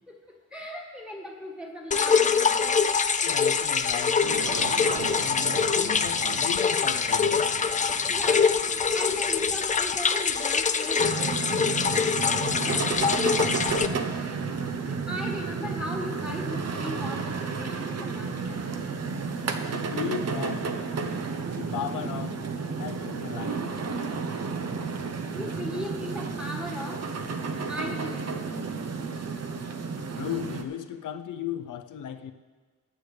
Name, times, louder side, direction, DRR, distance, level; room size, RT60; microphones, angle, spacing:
voice 1, 0.1-2.9 7.8-11.5 12.3-12.8 14.7-18.7 25.3-27.0 27.7-28.8, left 1 dB, 5° right, 0 dB, 1.7 m, -38 dB
sound 1, 1.9-13.9, left 6 dB, 25° left, 0.3 m, -24 dB
voice 2, 3.2-7.5 12.5-13.7 19.7-20.7 21.5-22.4 22.8-23.7 30.2-32.3, left 9 dB, 80° left, 9 dB, 0.7 m, -36 dB
Aircraft, 4.2-10.9, right 9 dB, 75° right, 0.6 m, -40 dB
sound 2, 11.0-30.6, right 5 dB, 55° right, 0.9 m, -32 dB
19.5 x 8.0 x 3.3 m, 1.4 s
wide cardioid pair, 130°, 31 cm